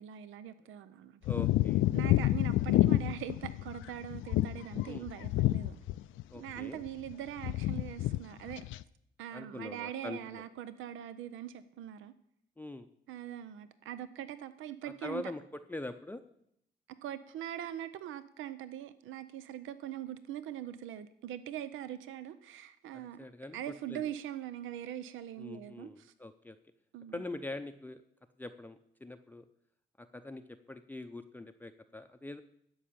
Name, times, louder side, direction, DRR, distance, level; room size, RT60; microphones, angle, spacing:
voice 1, 0.0-1.2 1.9-5.8 6.4-8.6 9.2-12.1 13.1-15.2 17.0-23.2 23.5-26.1 26.9-27.2, right 11 dB, 80° right, 0.6 m, -42 dB
sound 1, 1.2-6.2 6.5-7.1 7.4-8.2 8.5-8.8, left 15 dB, 80° left, 0.4 m, -29 dB
voice 2, 1.2-1.9 4.8-5.1 6.3-6.8 9.3-10.4 12.6-12.9 14.8-15.4 15.7-16.2 22.9-23.6 23.9-24.0 25.4-26.6 27.1-28.0 28.4-29.5 30.0-32.4, left 2 dB, 10° left, 0.6 m, -43 dB
12.5 x 5.5 x 8.6 m
cardioid pair, 90°, 20 cm